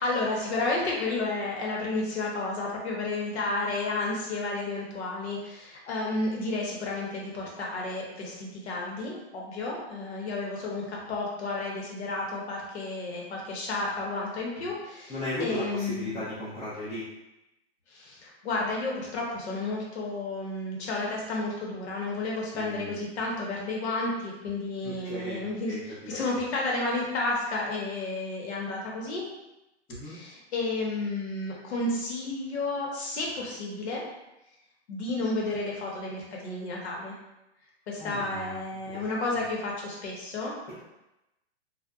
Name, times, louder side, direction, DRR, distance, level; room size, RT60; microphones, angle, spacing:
voice 1, 0.0-15.1 15.4-16.1 17.9-29.2 30.0-34.0 34.9-37.1 37.9-40.5, left 2 dB, 70° left, -2 dB, 0.9 m, -31 dB
voice 2, 15.1-17.0 22.5-23.0 24.8-25.8 29.9-30.1 38.0-38.5 38.9-39.0, left 1 dB, 10° left, -13 dB, 0.5 m, -36 dB
2.5 x 2.1 x 2.3 m, 0.95 s
hypercardioid pair, 145°, 34 cm